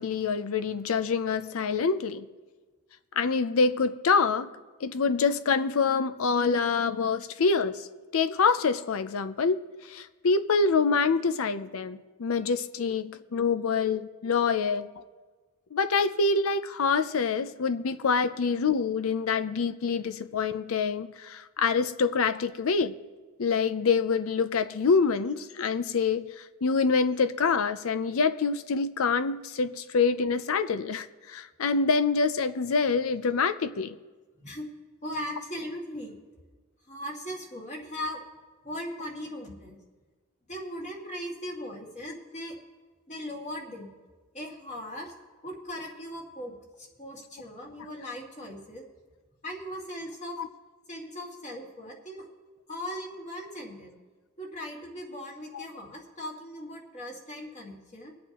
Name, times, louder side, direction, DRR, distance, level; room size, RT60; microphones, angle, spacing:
voice 1, 0.0-2.3 3.2-4.5 4.8-7.9 8.1-15.0 15.7-22.9 23.4-33.9 55.5-55.6, left 5 dB, 65° left, 0.5 m, -26 dB
voice 2, 35.0-36.2 36.9-38.2 38.6-39.8 40.5-42.6 43.1-43.9 44.3-45.1 45.4-48.8 49.4-50.4 50.9-52.3 52.7-54.0 54.4-58.1, equal, 35° left, 2.1 m, -38 dB
24.0 x 8.5 x 3.0 m
head